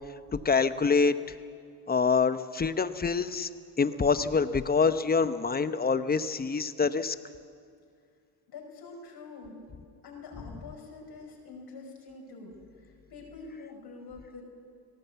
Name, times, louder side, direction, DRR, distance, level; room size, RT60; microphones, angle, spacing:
voice 1, 0.3-1.1 1.9-3.5 3.8-7.1, left 5 dB, 20° left, 12 dB, 0.9 m, -26 dB
voice 2, 8.5-9.6 10.0-14.5, left 3 dB, 55° left, -1 dB, 5.5 m, -46 dB
19.5 x 17.5 x 8.2 m, 2.2 s
supercardioid pair, 85°, 45 cm